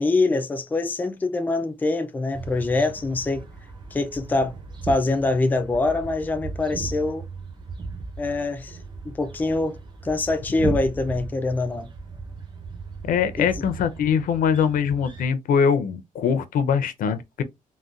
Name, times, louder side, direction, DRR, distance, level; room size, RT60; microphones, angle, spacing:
voice 1, 0.0-3.4 3.9-4.5 4.8-7.3 8.2-8.8 9.0-11.9 13.4-13.5, left 2 dB, 15° left, 0.4 m, -24 dB
sound 1, 2.3-15.2, right 3 dB, 30° right, 0.8 m, -36 dB
voice 2, 13.1-17.4, left 7 dB, 85° left, 0.5 m, -22 dB
3.9 x 2.1 x 2.4 m
wide cardioid pair, 170°, 14 cm